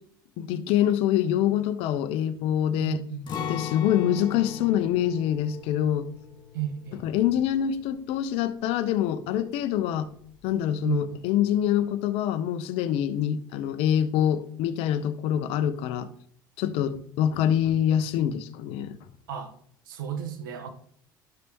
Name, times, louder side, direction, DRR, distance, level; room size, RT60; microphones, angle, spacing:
voice 1, 0.4-3.0 3.5-6.1 7.0-10.1 10.4-16.1 16.6-19.0, left 10 dB, 60° left, 0.8 m, -25 dB
voice 2, 2.8-3.3 6.5-7.0 10.8-11.2 19.3-19.5 19.8-20.7, right 9 dB, 80° right, 1.2 m, -33 dB
Acoustic guitar, 3.3-9.2 9.5-9.6 10.1-10.6, left 8 dB, 45° left, 1.8 m, -39 dB
12.5 x 6.1 x 3.0 m
hypercardioid pair, 70°, 11 cm